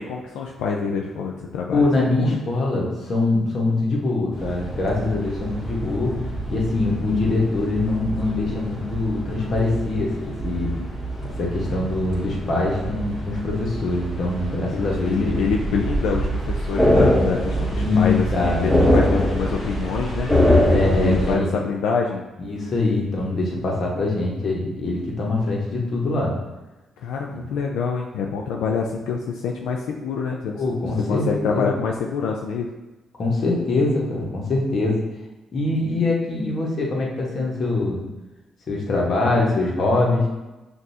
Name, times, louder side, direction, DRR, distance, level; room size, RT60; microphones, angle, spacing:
voice 1, 0.0-2.4 14.7-20.3 20.9-22.2 27.0-30.6 31.1-32.7, left 5 dB, 90° left, 0 dB, 0.3 m, -26 dB
voice 2, 1.7-6.2 6.5-10.7 11.4-15.4 17.7-19.3 20.7-21.5 22.4-26.3 27.3-27.5 30.5-31.8 33.2-35.0 35.5-38.0 38.7-40.3, left 2 dB, 50° left, -2 dB, 1.2 m, -23 dB
sound 1, 4.3-21.3, equal, 10° left, 1.3 m, -24 dB
6.0 x 2.6 x 2.7 m, 1.1 s
cardioid pair, 90°, 0 cm